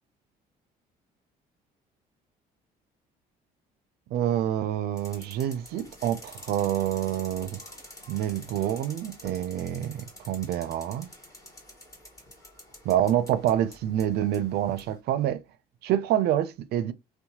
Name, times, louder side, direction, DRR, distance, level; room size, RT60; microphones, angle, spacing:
voice 1, 4.1-7.6 8.1-11.1 12.9-15.4 15.8-16.9, right 11 dB, 70° right, 0.4 m, -27 dB
sound 1, 5.0-15.0, left 1 dB, 20° left, 1.3 m, -48 dB
2.7 x 2.1 x 2.8 m
cardioid pair, 110°, 17 cm